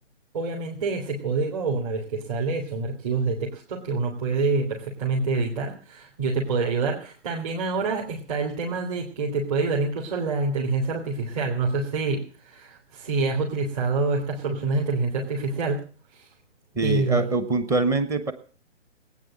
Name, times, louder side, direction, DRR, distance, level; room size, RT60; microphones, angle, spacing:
voice 1, 0.3-15.8 16.1-16.3 16.8-17.2, right 3 dB, 30° right, -2 dB, 3.3 m, -26 dB
voice 2, 16.7-18.3, right 3 dB, 10° right, 12 dB, 1.0 m, -24 dB
19.0 x 9.4 x 7.6 m, 0.42 s
figure-of-eight pair, 145°, 37 cm